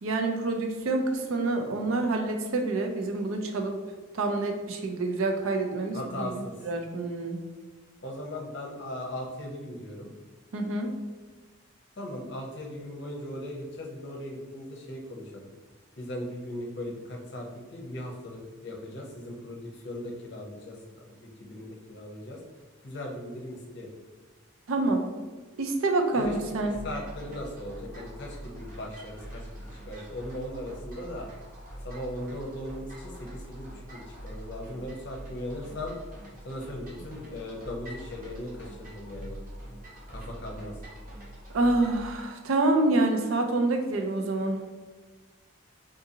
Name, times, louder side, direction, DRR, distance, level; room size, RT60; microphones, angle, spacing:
voice 1, 0.0-3.8 4.1-7.4 10.5-10.9 24.7-25.1 25.6-26.8 41.5-44.6, right 2 dB, 80° right, 4 dB, 0.5 m, -27 dB
voice 2, 5.9-6.5 8.0-10.1 12.0-15.5 16.0-20.8 21.1-22.4 22.8-23.9 26.2-26.3 26.6-31.3 31.8-35.9 36.4-39.4 40.1-40.7, left 1 dB, 55° left, -1 dB, 0.6 m, -38 dB
sound 1, 26.2-42.0, equal, 40° right, 0.9 m, -44 dB
3.7 x 2.5 x 2.7 m, 1.4 s
head